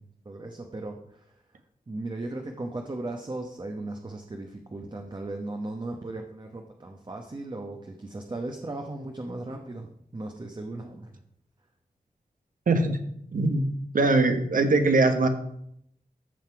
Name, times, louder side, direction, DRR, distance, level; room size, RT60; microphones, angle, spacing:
voice 1, 0.0-1.4 1.9-11.1, right 2 dB, 30° right, 3 dB, 1.0 m, -37 dB
voice 2, 12.7-13.0 13.3-13.7 13.9-15.3, right 3 dB, 70° right, 7 dB, 1.3 m, -21 dB
14.0 x 5.7 x 4.7 m, 0.73 s
wide cardioid pair, 110°, 15 cm